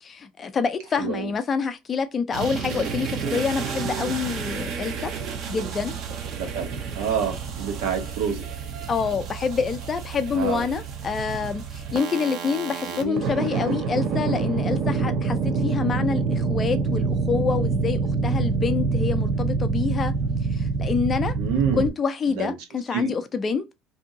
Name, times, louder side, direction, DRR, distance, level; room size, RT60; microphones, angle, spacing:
voice 1, 0.0-5.1 5.5-6.0 8.9-20.1 20.5-21.3 21.8-23.6, left 5 dB, 25° left, 0.5 m, -27 dB
voice 2, 1.0-1.3 6.4-6.7 6.9-8.5 10.3-10.7 12.9-13.2 21.4-21.9 22.3-22.5 22.9-23.1, right 7 dB, 75° right, 1.0 m, -27 dB
sound 1, 2.3-21.9, right 4 dB, 45° right, 0.7 m, -27 dB
2.7 x 2.7 x 3.7 m
cardioid pair, 155°, 0 cm